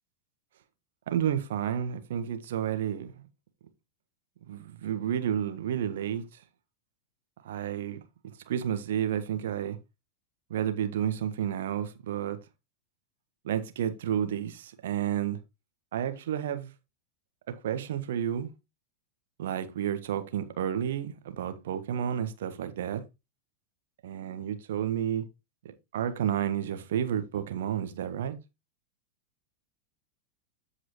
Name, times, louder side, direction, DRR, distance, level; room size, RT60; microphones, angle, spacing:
voice 1, 1.1-3.2 4.5-6.2 7.4-8.0 8.5-9.8 10.5-12.4 13.4-15.4 15.9-16.7 17.5-18.5 19.4-23.0 24.0-25.2 25.6-28.4, right 9 dB, 60° right, 1.3 m, -31 dB
14.0 x 4.9 x 3.0 m
figure-of-eight pair, 90°, 0 cm